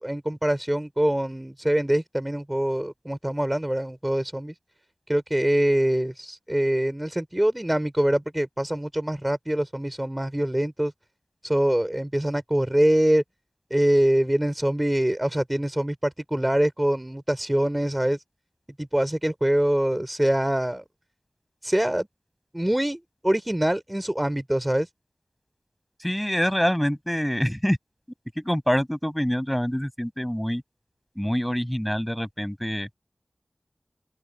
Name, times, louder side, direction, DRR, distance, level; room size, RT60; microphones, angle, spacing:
voice 1, 0.0-4.5 5.1-10.9 11.4-13.2 13.7-18.2 18.8-20.8 21.6-22.1 22.5-24.9, right 1 dB, 15° right, 3.3 m, -24 dB
voice 2, 26.0-27.8 28.4-30.6 31.2-32.9, equal, 5° left, 7.1 m, -25 dB
open air
wide cardioid pair, 45°, 0 cm